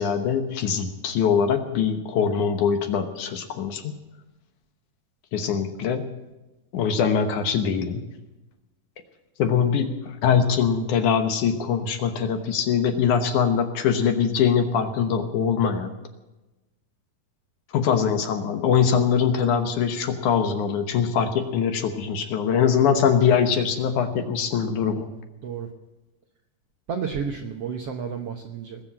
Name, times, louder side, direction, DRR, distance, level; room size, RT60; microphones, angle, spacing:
voice 1, 0.0-3.9 5.3-6.1 6.7-8.1 9.4-15.9 17.7-25.1, left 7 dB, 65° left, 7 dB, 2.3 m, -22 dB
voice 2, 26.9-28.8, right 6 dB, 70° right, 3 dB, 1.5 m, -31 dB
20.0 x 7.4 x 8.7 m, 1.1 s
omnidirectional pair, 4.1 m